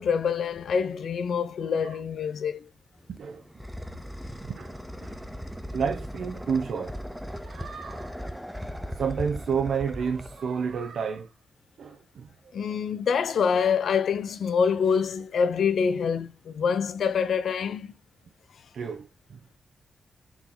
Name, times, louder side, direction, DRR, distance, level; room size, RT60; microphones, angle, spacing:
voice 1, 0.0-2.7 12.5-17.9, left 6 dB, 70° left, 0.7 m, -26 dB
sound 1, 3.0-10.9, equal, ahead, 0.7 m, -38 dB
voice 2, 3.1-3.4 4.4-5.2 5.7-7.0 7.3-8.1 8.9-11.3 11.8-12.3 18.7-19.6, right 6 dB, 65° right, 0.8 m, -31 dB
6.1 x 4.8 x 3.9 m
wide cardioid pair, 175°, 0 cm